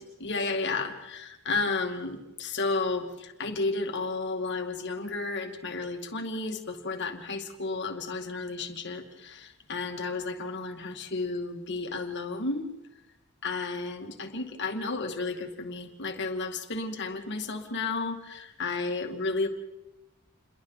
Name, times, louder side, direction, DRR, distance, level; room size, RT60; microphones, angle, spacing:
voice 1, 0.2-12.7 13.4-19.5, left 3 dB, 55° left, 4 dB, 2.4 m, -32 dB
29.0 x 22.5 x 4.1 m, 0.96 s
head